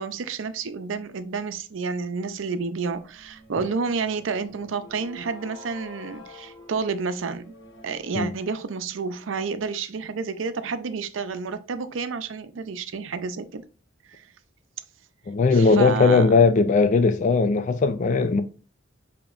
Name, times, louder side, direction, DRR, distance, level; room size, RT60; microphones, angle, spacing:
voice 1, 0.0-7.4 7.8-13.6 14.1-14.2 15.5-16.4, right 5 dB, 85° right, 0.5 m, -30 dB
sound 1, 2.9-8.2, left 1 dB, 70° left, 1.4 m, -47 dB
voice 2, 15.3-18.4, left 4 dB, 40° left, 0.3 m, -19 dB
6.8 x 2.9 x 2.4 m
head